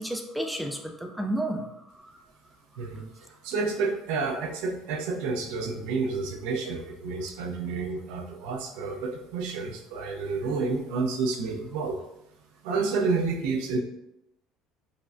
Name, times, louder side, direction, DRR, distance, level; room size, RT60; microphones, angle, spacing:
voice 1, 0.0-2.2 2.8-2.9, right 1 dB, ahead, 3 dB, 0.3 m, -32 dB
voice 2, 2.8-3.1 3.4-12.0 12.6-13.8, right 4 dB, 85° right, 4 dB, 0.6 m, -30 dB
5.1 x 2.1 x 2.5 m, 0.83 s
cardioid pair, 135°, 0 cm